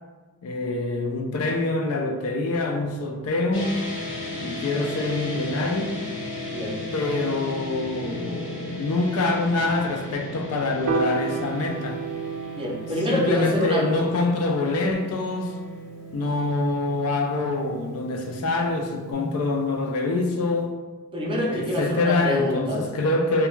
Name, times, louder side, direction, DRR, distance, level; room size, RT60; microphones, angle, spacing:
voice 1, 0.4-3.8 4.4-6.0 6.9-12.0 13.1-15.5 16.1-20.8 21.5-23.5, left 2 dB, 75° left, 3 dB, 0.4 m, -25 dB
sound 1, 3.5-19.1, left 1 dB, 60° left, 0.7 m, -36 dB
voice 2, 6.5-6.8 12.5-14.0 21.1-22.8, left 1 dB, 25° right, -3 dB, 0.5 m, -26 dB
Piano, 10.9-17.2, right 5 dB, 90° right, 0.3 m, -33 dB
2.2 x 2.2 x 3.0 m, 1.3 s
head